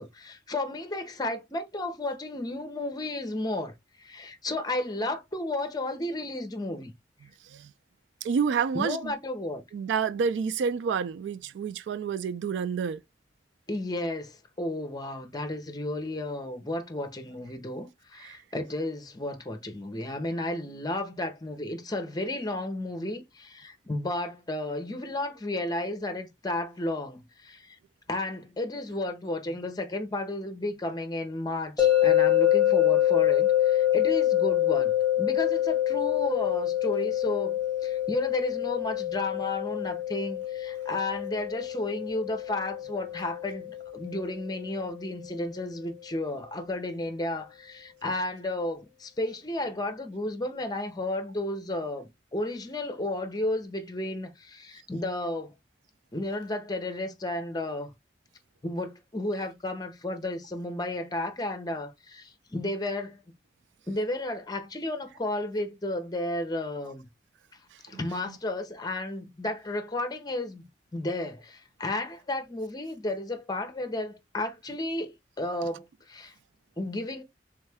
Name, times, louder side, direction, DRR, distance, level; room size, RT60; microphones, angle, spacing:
voice 1, 0.0-3.7 4.0-6.9 8.7-9.6 13.7-27.8 28.1-55.5 56.1-57.9 58.6-63.2 63.9-67.0 67.8-76.3 76.8-77.2, left 1 dB, 25° left, 0.8 m, -33 dB
voice 2, 8.2-9.1 9.7-13.0 18.2-18.4 34.8-34.9 67.9-68.4, right 6 dB, 85° right, 0.3 m, -29 dB
sound 1, 31.8-44.9, left 12 dB, 5° left, 1.4 m, -26 dB
3.6 x 3.1 x 3.4 m
head